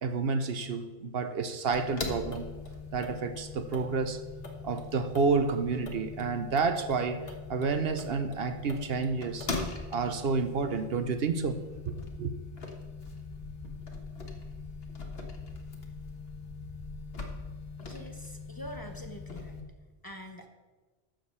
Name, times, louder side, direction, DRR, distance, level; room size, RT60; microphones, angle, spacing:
voice 1, 0.0-2.5 2.9-4.2 4.6-7.2 7.5-9.5 9.9-11.6 11.9-12.0 12.2-12.3, right 4 dB, 70° right, 1.0 m, -30 dB
sound 1, 1.7-19.6, left 4 dB, 70° left, 1.5 m, -41 dB
voice 2, 17.8-19.6 20.0-20.5, equal, 25° left, 0.8 m, -44 dB
13.0 x 5.1 x 6.9 m
omnidirectional pair, 1.1 m